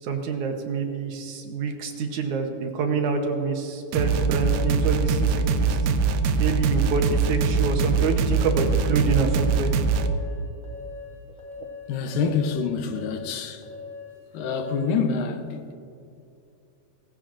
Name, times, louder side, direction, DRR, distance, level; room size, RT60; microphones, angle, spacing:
voice 1, 0.0-5.8 6.4-9.7, right 5 dB, 70° right, 2.1 m, -27 dB
sound 1, 3.9-10.1, right 4 dB, 85° right, 2.3 m, -23 dB
sound 2, 8.4-14.9, left 4 dB, 15° left, 3.1 m, -40 dB
voice 2, 11.9-13.7 14.3-15.7, left 5 dB, 85° left, 2.6 m, -26 dB
18.0 x 15.0 x 2.5 m
omnidirectional pair, 3.9 m